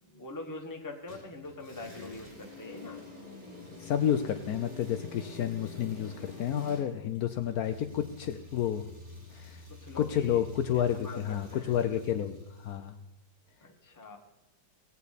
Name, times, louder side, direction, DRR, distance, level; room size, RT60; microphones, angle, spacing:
voice 1, 0.0-3.0 9.7-10.4 10.7-11.8 13.6-14.2, left 2 dB, 10° left, 1 dB, 1.0 m, -43 dB
sound 1, 1.1-12.8, left 2 dB, 40° right, 5.0 m, -48 dB
voice 2, 3.8-8.8 9.3-9.6 10.0-12.9, left 10 dB, 90° left, 8 dB, 0.8 m, -30 dB
18.0 x 8.4 x 4.1 m, 0.97 s
omnidirectional pair, 2.3 m